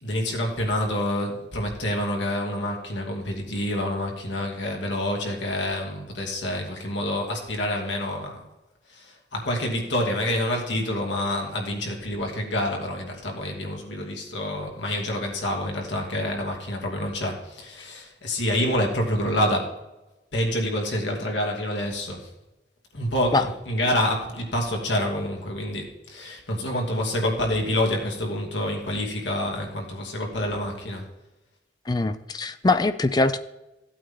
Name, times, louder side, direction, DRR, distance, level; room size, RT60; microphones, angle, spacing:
voice 1, 0.0-8.4 8.9-19.7 20.3-22.3 22.9-31.1, left 1 dB, 80° left, 1 dB, 2.7 m, -27 dB
voice 2, 31.9-33.4, left 2 dB, 20° left, 12 dB, 0.4 m, -22 dB
16.0 x 8.6 x 3.8 m, 1.0 s
head